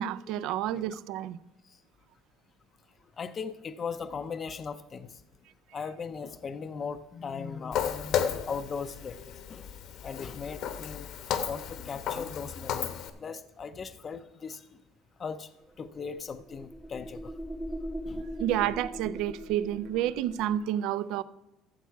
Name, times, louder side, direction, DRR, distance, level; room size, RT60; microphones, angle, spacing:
voice 1, 0.0-1.4 18.4-21.2, right 11 dB, 70° right, 0.4 m, -30 dB
voice 2, 3.2-5.2 5.7-9.7 10.0-11.1 11.4-12.9 13.2-14.8 15.2-15.5 15.8-17.3 18.1-18.3, left 5 dB, 30° left, 0.5 m, -38 dB
Walk footsteps, 7.7-13.1, left 9 dB, 60° left, 1.0 m, -33 dB
sound 1, 15.7-20.6, equal, 10° right, 0.7 m, -40 dB
13.5 x 7.2 x 4.6 m
cardioid pair, 135°, 0 cm